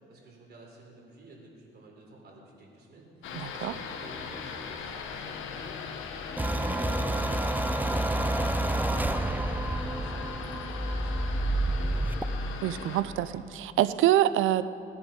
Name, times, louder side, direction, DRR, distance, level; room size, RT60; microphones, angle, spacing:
voice 1, 0.1-5.8 6.4-11.8, right 2 dB, 55° right, -1 dB, 4.0 m, -50 dB
sound 1, 3.2-13.0, left 6 dB, 80° left, 1.3 m, -39 dB
voice 2, 3.3-3.7 12.6-14.6, right 13 dB, 85° right, 14 dB, 0.6 m, -25 dB
sound 2, 6.4-12.2, right 1 dB, 10° right, 0.6 m, -29 dB
19.0 x 9.7 x 5.4 m, 2.8 s
cardioid pair, 90°, 20 cm